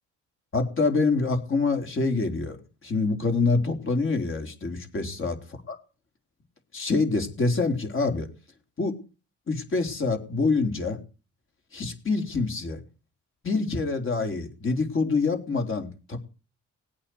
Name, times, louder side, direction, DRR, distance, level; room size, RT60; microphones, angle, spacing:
voice 1, 0.5-2.6 2.8-5.4 5.7-5.8 6.7-8.3 8.8-9.0 9.5-11.0 11.7-12.8 13.4-16.2, left 3 dB, 45° left, 5 dB, 4.0 m, -26 dB
19.5 x 8.6 x 8.0 m, 0.35 s
cardioid pair, 90°, 30 cm